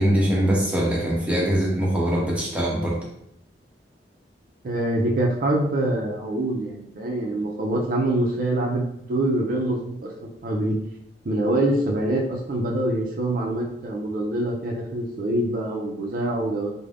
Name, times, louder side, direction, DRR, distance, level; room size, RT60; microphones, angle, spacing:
voice 1, 0.0-3.0, equal, 5° right, -4 dB, 0.6 m, -22 dB
voice 2, 4.6-10.8 11.2-16.7, right 1 dB, 50° right, -1 dB, 0.4 m, -25 dB
2.4 x 2.0 x 3.2 m, 0.78 s
head